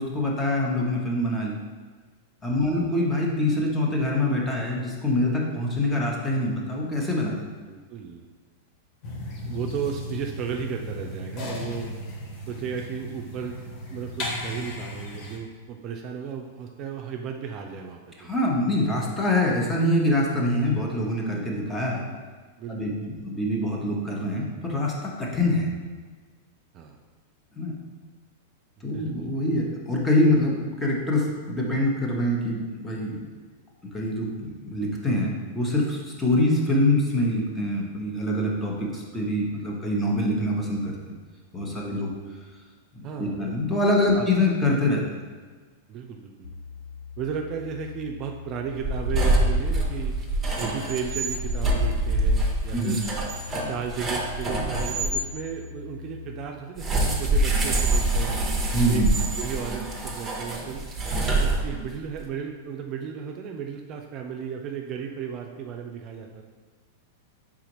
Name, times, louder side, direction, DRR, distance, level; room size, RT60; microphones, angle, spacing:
voice 1, 0.0-1.6 2.4-7.5 18.2-22.0 22.7-25.7 27.6-27.8 28.8-33.3 33.9-41.1 41.5-42.1 43.0-45.0 52.7-53.0 58.7-59.1, left 1 dB, 15° left, -2 dB, 1.0 m, -25 dB
voice 2, 7.7-8.2 9.4-11.9 12.5-18.3 22.6-23.0 26.7-27.0 28.8-29.3 41.8-42.3 43.0-43.5 44.1-44.3 45.9-46.6 47.2-50.2 50.6-53.0 53.7-58.4 58.9-59.1 59.4-60.9 61.4-66.4, right 7 dB, 40° right, 2 dB, 0.4 m, -35 dB
sound 1, 9.0-15.4, left 1 dB, 45° left, 0.9 m, -35 dB
sound 2, 46.4-56.4, left 6 dB, 85° left, 0.3 m, -42 dB
sound 3, 48.8-55.2 56.8-62.0, right 2 dB, 15° right, 0.8 m, -25 dB
4.8 x 3.6 x 3.0 m, 1.5 s
hypercardioid pair, 110°, 0 cm